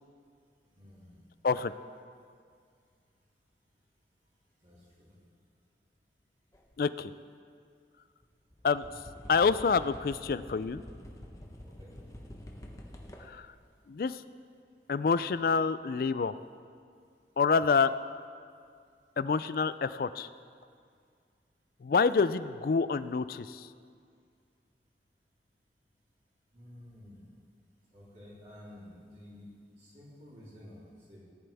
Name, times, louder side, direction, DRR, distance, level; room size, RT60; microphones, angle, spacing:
voice 1, 0.7-1.2 4.6-5.1 11.6-12.0 26.5-27.3 27.9-29.5 29.8-31.2, left 1 dB, 40° right, -9 dB, 3.4 m, -52 dB
sound 1, 6.5-6.8 8.2-8.3 8.5-13.5 15.3-15.4, left 1 dB, 20° left, 0.9 m, -48 dB
voice 2, 6.8-7.1 8.6-8.9 9.3-10.8 13.3-13.4 13.9-14.2 14.9-16.3 17.4-17.9 19.2-20.3 21.8-23.6, left 5 dB, 55° left, 15 dB, 0.3 m, -27 dB
17.5 x 11.0 x 3.5 m, 2.2 s
head